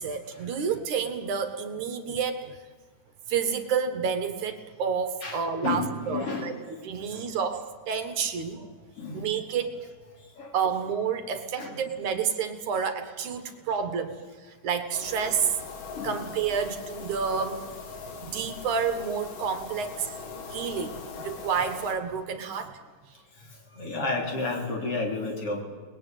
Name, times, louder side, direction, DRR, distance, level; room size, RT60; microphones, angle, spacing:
voice 1, 0.0-2.6 3.3-8.7 9.1-9.9 10.5-15.5 16.0-17.6 18.2-20.2 20.5-22.8, right 6 dB, 70° right, 8 dB, 2.9 m, -29 dB
voice 2, 5.2-6.5 9.0-9.3 10.4-10.5 11.6-11.8 15.9-16.2 23.7-25.6, left 3 dB, 45° left, 2 dB, 4.3 m, -31 dB
sound 1, 14.9-21.9, left 4 dB, 80° left, 4.1 m, -41 dB
30.0 x 20.5 x 9.2 m, 1.5 s
omnidirectional pair, 3.7 m